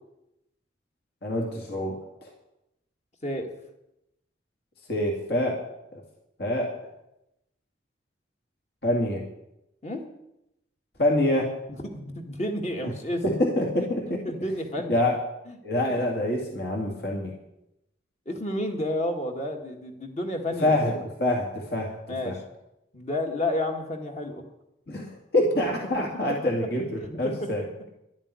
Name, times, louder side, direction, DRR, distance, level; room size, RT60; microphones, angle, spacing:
voice 1, 1.2-2.3 4.9-5.6 5.9-6.0 6.4-6.7 8.8-9.2 11.0-11.5 12.8-12.9 13.2-14.2 14.9-15.2 15.6-17.3 20.6-21.9 22.2-22.4 24.9-27.6, left 1 dB, 55° left, -1 dB, 2.3 m, -26 dB
voice 2, 11.9-13.2 14.3-15.0 15.5-15.6 18.3-21.0 22.1-22.4 22.9-24.4 27.0-27.1, left 1 dB, 35° left, 3 dB, 1.8 m, -30 dB
11.5 x 7.3 x 9.8 m, 0.86 s
head